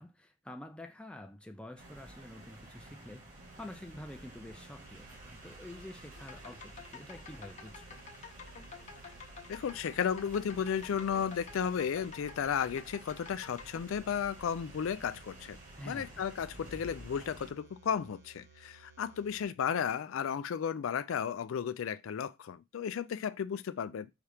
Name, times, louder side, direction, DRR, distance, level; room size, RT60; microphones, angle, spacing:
voice 1, 0.0-3.3 3.6-8.1 15.8-16.2, left 1 dB, 5° left, 0.4 m, -48 dB
sound 1, 1.8-17.5, right 1 dB, 40° right, 1.6 m, -52 dB
sound 2, 3.4-19.5, right 5 dB, 70° right, 0.9 m, -60 dB
sound 3, 6.2-13.8, left 5 dB, 35° left, 0.9 m, -50 dB
voice 2, 9.5-15.6 15.8-24.1, left 7 dB, 80° left, 0.4 m, -34 dB
4.9 x 2.8 x 3.3 m
head